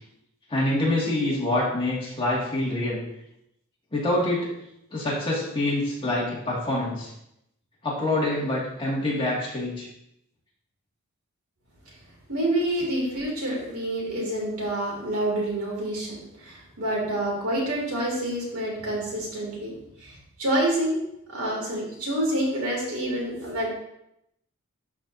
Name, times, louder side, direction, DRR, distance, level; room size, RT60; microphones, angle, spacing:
voice 1, 0.5-3.0 3.9-4.5 4.9-7.1 7.8-9.9, left 1 dB, 25° left, -6 dB, 2.1 m, -26 dB
voice 2, 12.3-19.7 20.0-20.1 20.4-21.0 21.3-23.7, right 1 dB, 80° right, -3 dB, 2.8 m, -27 dB
12.0 x 4.4 x 2.7 m, 0.79 s
head